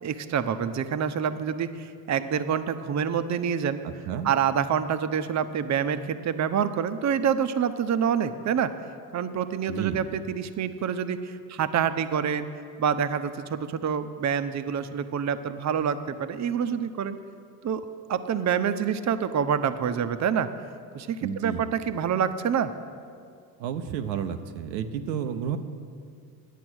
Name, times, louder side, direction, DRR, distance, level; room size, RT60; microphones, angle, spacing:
voice 1, 0.0-3.8 4.2-8.8 9.1-12.5 12.8-17.2 17.6-17.8 18.1-20.5 20.9-22.7, right 7 dB, 35° right, 11 dB, 0.7 m, -27 dB
voice 2, 3.8-4.3 9.7-10.1 21.2-21.7 23.6-25.6, right 8 dB, 85° right, 8 dB, 0.7 m, -31 dB
10.0 x 8.4 x 6.2 m, 2.3 s
hypercardioid pair, 55°, 50 cm